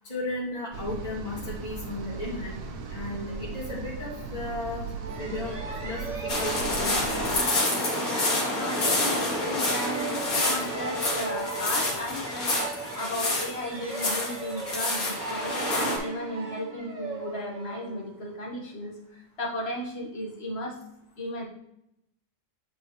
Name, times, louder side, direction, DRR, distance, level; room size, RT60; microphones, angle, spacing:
voice 1, 0.1-2.5 2.9-4.9 5.2-5.6 5.8-7.4, left 2 dB, 25° left, -8 dB, 2.0 m, -35 dB
sound 1, 0.7-7.4, right 4 dB, 75° right, 1.3 m, -37 dB
sound 2, 5.0-18.5, right 4 dB, 30° right, 0.8 m, -38 dB
sound 3, 6.3-16.0, left 2 dB, 65° left, 1.9 m, -28 dB
voice 2, 8.5-20.8 21.2-21.4, left 1 dB, 40° left, -2 dB, 1.7 m, -35 dB
8.6 x 4.2 x 3.3 m, 0.82 s
omnidirectional pair, 1.7 m